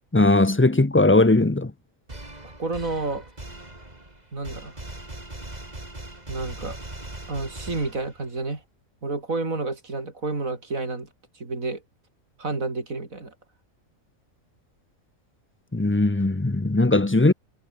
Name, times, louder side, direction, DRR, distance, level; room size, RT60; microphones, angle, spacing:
voice 1, 0.1-1.7 15.7-17.3, left 2 dB, 10° left, 0.6 m, -19 dB
Shock (Funny Version), 2.1-8.4, right 1 dB, 30° right, 4.1 m, -40 dB
voice 2, 2.6-3.3 4.3-4.7 6.3-6.8 7.3-8.6 9.0-11.1 11.4-11.8 12.4-13.3, right 3 dB, 85° right, 4.3 m, -30 dB
omnidirectional pair, 1.4 m